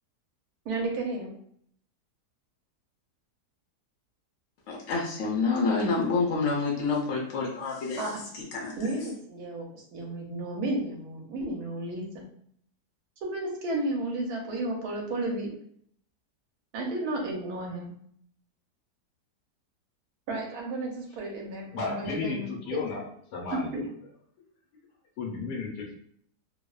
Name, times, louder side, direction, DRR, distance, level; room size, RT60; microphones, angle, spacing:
voice 1, 0.6-1.3 8.0-8.1 8.8-12.3 13.2-15.5 16.7-17.9 20.3-22.8 23.5-23.9, right 2 dB, 70° right, 0 dB, 1.1 m, -33 dB
voice 2, 4.7-9.1, left 4 dB, 65° left, -3 dB, 0.7 m, -28 dB
voice 3, 21.7-23.0 23.3-23.8 25.2-25.9, left 4 dB, 85° left, -3 dB, 1.2 m, -33 dB
2.9 x 2.0 x 2.3 m, 0.64 s
omnidirectional pair, 1.8 m